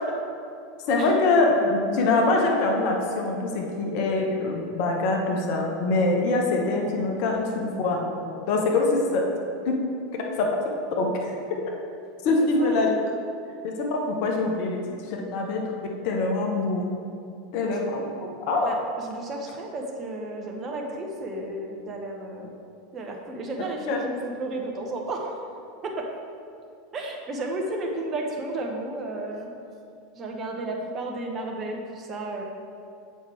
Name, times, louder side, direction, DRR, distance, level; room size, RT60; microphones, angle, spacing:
voice 1, 0.8-8.2 8.5-9.2 9.7-9.8 10.3-10.5 11.0-11.6 12.2-12.9 13.8-16.9 17.5-18.1 18.5-18.7 23.9-24.0, left 3 dB, 50° left, 1 dB, 1.0 m, -24 dB
voice 2, 18.6-22.5 22.9-25.4 25.8-26.1 26.9-29.5 30.1-32.4, right 2 dB, 30° right, 1 dB, 1.0 m, -33 dB
7.4 x 5.4 x 3.5 m, 2.5 s
figure-of-eight pair, 80°, 0 cm